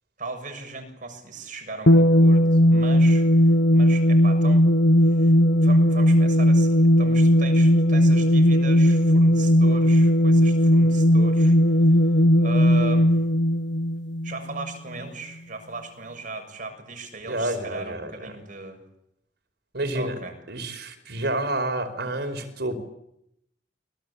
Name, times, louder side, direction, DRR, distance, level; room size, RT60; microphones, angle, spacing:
voice 1, 0.2-4.7 5.1-5.3 5.6-11.6 12.4-13.2 14.2-18.8 19.9-20.4, right 3 dB, 45° right, 5 dB, 7.0 m, -37 dB
sound 1, 1.9-14.7, equal, 65° left, 1.2 m, -17 dB
voice 2, 17.3-18.3 19.7-20.2 20.5-22.8, right 1 dB, 65° right, 6 dB, 5.1 m, -29 dB
29.0 x 23.0 x 8.7 m, 0.80 s
head